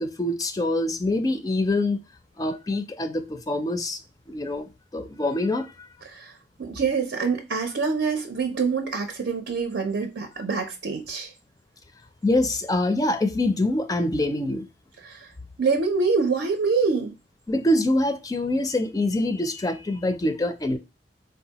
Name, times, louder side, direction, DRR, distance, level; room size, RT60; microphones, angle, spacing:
voice 1, 0.0-2.0 2.4-4.0 4.3-5.7 12.2-14.6 17.5-20.8, left 1 dB, 20° left, 0.4 m, -25 dB
voice 2, 6.6-11.3 15.0-15.2 15.6-17.1, right 4 dB, 70° right, 0.6 m, -25 dB
3.9 x 2.3 x 2.8 m
head